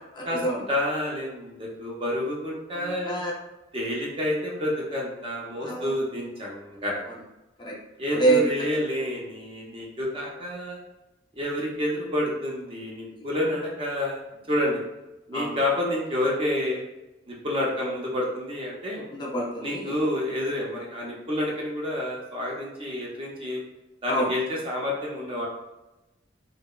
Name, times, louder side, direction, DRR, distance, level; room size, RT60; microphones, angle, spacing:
voice 1, 0.1-0.6 2.7-3.3 5.6-5.9 7.6-7.8 8.1-8.7 13.1-13.2 15.3-15.6 19.1-19.9 24.1-24.3, right 2 dB, 25° left, -4 dB, 0.4 m, -26 dB
voice 2, 0.7-3.1 3.7-7.0 8.0-10.8 11.4-14.2 14.5-14.8 15.3-16.8 17.3-19.1 19.6-23.6 24.0-25.5, left 1 dB, 30° right, -3 dB, 0.5 m, -29 dB
2.8 x 2.1 x 2.2 m, 1.0 s
head